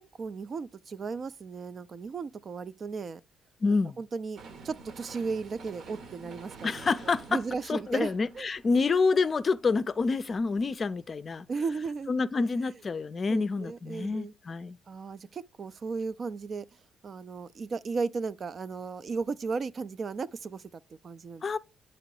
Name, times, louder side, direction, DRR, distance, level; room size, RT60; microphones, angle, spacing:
voice 1, 0.0-3.2 4.0-4.4 4.6-6.9 7.3-8.5 11.5-12.1 13.3-14.3 14.9-16.6 17.0-21.6, right 4 dB, 45° right, 0.4 m, -35 dB
voice 2, 3.6-4.0 6.6-7.4 7.7-11.5 12.1-14.8 21.4-21.6, left 4 dB, 40° left, 0.4 m, -27 dB
sound 1, 4.3-10.3 10.7-10.8, right 4 dB, 65° right, 1.0 m, -49 dB
8.7 x 3.0 x 4.6 m
cardioid pair, 90°, 0 cm